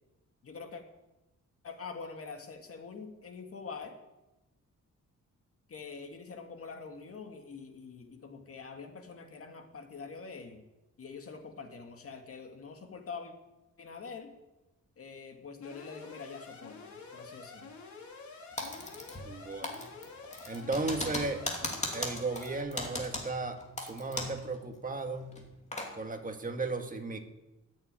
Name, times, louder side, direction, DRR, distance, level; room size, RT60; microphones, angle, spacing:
voice 1, 0.4-0.8 1.6-4.0 5.7-10.6 11.0-13.3 13.8-14.4 15.0-17.7, left 5 dB, 50° left, 5 dB, 2.2 m, -45 dB
Alarm, 15.6-22.6, left 4 dB, 70° left, 3.7 m, -48 dB
Typing, 18.6-19.4 19.6-24.5 24.7-24.8 25.3-25.9, left 2 dB, 20° left, 2.7 m, -37 dB
voice 2, 19.2-19.9 20.4-21.4 21.9-25.4 25.9-27.2, right 3 dB, 25° right, 5 dB, 1.7 m, -35 dB
14.0 x 8.8 x 9.1 m, 1.0 s
wide cardioid pair, 150°, 30 cm